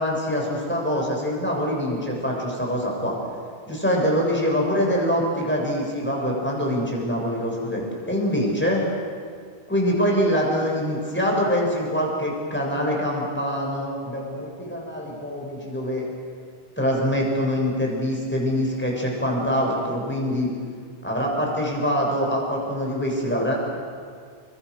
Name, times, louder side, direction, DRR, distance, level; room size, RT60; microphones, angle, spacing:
voice 1, 0.0-3.1 3.7-8.8 9.7-16.1 16.8-20.5 21.0-23.5, equal, 10° left, -2 dB, 7.0 m, -24 dB
29.5 x 24.5 x 6.5 m, 2.1 s
omnidirectional pair, 1.1 m